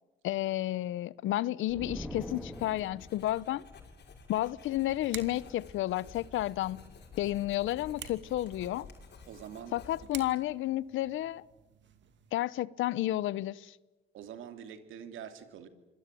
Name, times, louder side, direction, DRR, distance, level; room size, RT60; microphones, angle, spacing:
voice 1, 0.2-3.6 4.3-6.8 7.2-8.9 9.7-11.4 12.3-13.8, left 15 dB, 80° left, 0.8 m, -31 dB
sound 1, 1.7-3.3, left 1 dB, ahead, 3.0 m, -42 dB
Writing, 2.2-10.4, left 4 dB, 60° left, 6.5 m, -52 dB
sound 2, 5.1-12.3, right 9 dB, 70° right, 2.6 m, -51 dB
voice 2, 9.3-9.8 14.1-15.7, right 8 dB, 85° right, 2.9 m, -45 dB
26.0 x 20.5 x 9.2 m
cardioid pair, 90°, 20 cm